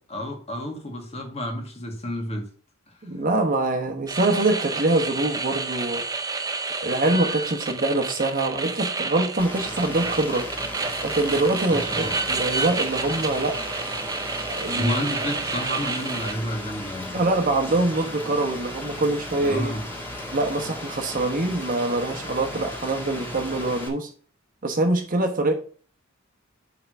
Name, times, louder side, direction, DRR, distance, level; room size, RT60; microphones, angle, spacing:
voice 1, 0.1-2.5 11.7-12.1 14.8-17.1 19.4-19.8, equal, 30° left, 2 dB, 1.8 m, -30 dB
voice 2, 3.0-6.0 6.8-10.5 11.0-13.8 14.5-14.9 17.1-19.7 20.3-24.1 24.6-25.5, right 2 dB, 40° right, 5 dB, 1.2 m, -24 dB
sound 1, 4.1-16.3, right 4 dB, 20° right, 0.6 m, -30 dB
Rain, 9.4-23.9, left 1 dB, 10° left, 1.9 m, -36 dB
5.8 x 4.9 x 6.2 m, 0.43 s
head